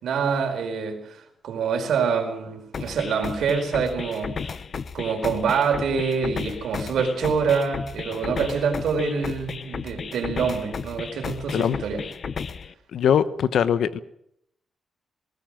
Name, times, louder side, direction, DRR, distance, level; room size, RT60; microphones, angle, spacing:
voice 1, 0.0-4.5 4.9-12.0, right 6 dB, 90° right, 3 dB, 4.7 m, -26 dB
sound 1, 2.7-12.7, left 5 dB, 40° left, 0.8 m, -34 dB
voice 2, 12.9-14.0, left 8 dB, 75° left, 14 dB, 1.0 m, -21 dB
19.5 x 18.5 x 7.7 m, 0.73 s
wide cardioid pair, 175°, 0 cm